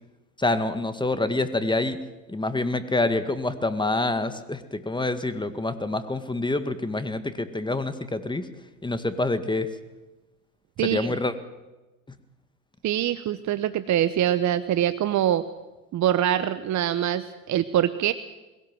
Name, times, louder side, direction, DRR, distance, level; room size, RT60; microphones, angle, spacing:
voice 1, 0.4-2.0 2.3-8.5 8.8-9.7 10.8-11.3, left 2 dB, 10° left, 11 dB, 1.9 m, -26 dB
voice 2, 12.8-15.4 15.9-18.1, right 11 dB, 45° right, 13 dB, 0.9 m, -24 dB
21.5 x 17.0 x 7.7 m, 1.1 s
hypercardioid pair, 75°, 39 cm